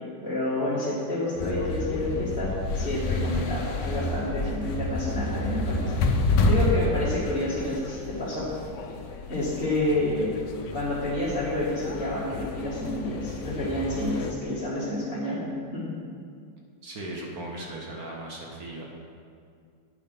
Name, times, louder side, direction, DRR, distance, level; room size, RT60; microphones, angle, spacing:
voice 1, 0.0-5.9 6.5-8.5 9.3-10.3 10.7-15.4 15.7-15.9, left 1 dB, 30° left, -10 dB, 2.0 m, -29 dB
sound 1, 1.4-14.3, left 2 dB, 75° left, 1.4 m, -30 dB
voice 2, 16.8-18.9, right 1 dB, 55° right, -1 dB, 1.7 m, -37 dB
9.3 x 7.2 x 6.0 m, 2.3 s
omnidirectional pair, 2.0 m